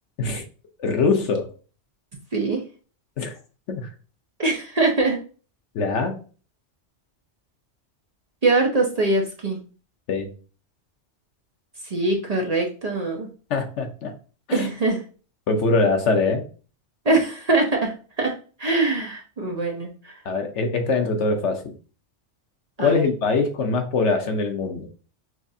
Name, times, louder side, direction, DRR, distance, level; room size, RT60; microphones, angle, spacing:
voice 1, 0.8-1.5 3.2-3.4 3.7-3.9 5.7-6.2 10.1-10.3 13.5-14.1 14.5-14.7 15.5-16.4 20.2-21.7 22.8-24.9, left 4 dB, 80° left, 5 dB, 1.1 m, -23 dB
voice 2, 4.4-5.2 8.4-9.6 11.9-13.3 14.5-15.0 17.0-20.2 22.8-23.1, right 2 dB, 40° right, 1 dB, 0.7 m, -23 dB
6.0 x 2.5 x 2.7 m, 0.37 s
omnidirectional pair, 1.2 m